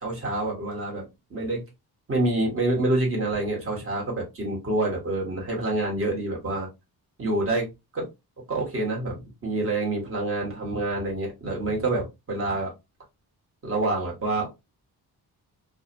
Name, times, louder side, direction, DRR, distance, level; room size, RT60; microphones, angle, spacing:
voice 1, 0.0-1.6 2.1-6.7 7.2-7.7 7.9-8.1 8.5-12.7 13.6-14.5, right 2 dB, 35° right, -2 dB, 1.3 m, -27 dB
2.6 x 2.4 x 2.6 m, 0.23 s
cardioid pair, 125°, 37 cm